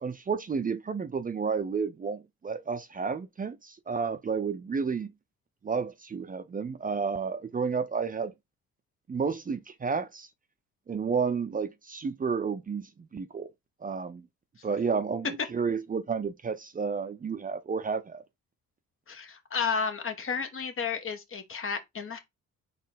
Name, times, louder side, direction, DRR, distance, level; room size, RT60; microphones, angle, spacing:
voice 1, 0.0-5.1 5.6-8.3 9.1-10.3 10.9-13.5 13.8-14.2 14.6-18.2, right 5 dB, 30° right, 0.6 m, -31 dB
voice 2, 19.1-22.2, left 6 dB, 45° left, 1.3 m, -32 dB
4.2 x 3.0 x 4.0 m
cardioid pair, 90°, 30 cm